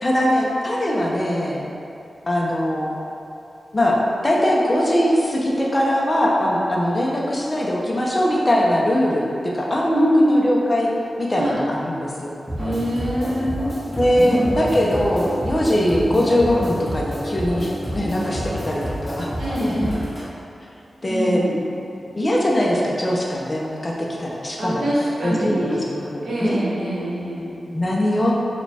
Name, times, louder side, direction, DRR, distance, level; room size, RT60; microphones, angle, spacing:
voice 1, 0.0-1.7 2.3-2.9 3.7-4.0 4.2-9.3 9.5-10.9 11.2-12.3 14.0-19.3 21.0-21.4 22.1-23.9 24.2-24.9 25.2-26.6 27.7-28.3, equal, 25° left, -3 dB, 0.5 m, -21 dB
voice 2, 9.9-10.4 11.4-11.6 12.6-13.7 14.2-14.6 19.4-19.9 21.1-21.6 24.6-25.8 26.2-27.5, equal, 60° right, -7 dB, 0.9 m, -23 dB
sound 1, 12.5-20.3, equal, ahead, 0.9 m, -28 dB
4.9 x 2.2 x 3.3 m, 2.8 s
wide cardioid pair, 165°, 0 cm